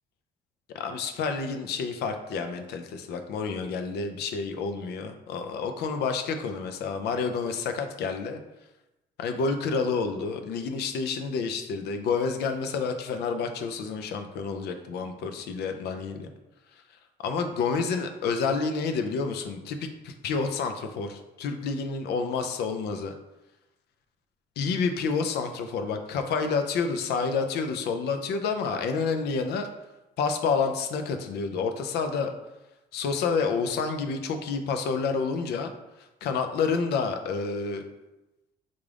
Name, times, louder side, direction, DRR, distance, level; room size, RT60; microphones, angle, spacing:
voice 1, 0.7-8.4 9.2-16.3 17.2-23.1 24.6-29.7 30.2-32.3 32.9-35.7 36.2-37.8, left 5 dB, 70° left, 6 dB, 0.5 m, -29 dB
3.6 x 2.5 x 3.3 m, 0.99 s
supercardioid pair, 75°, 18 cm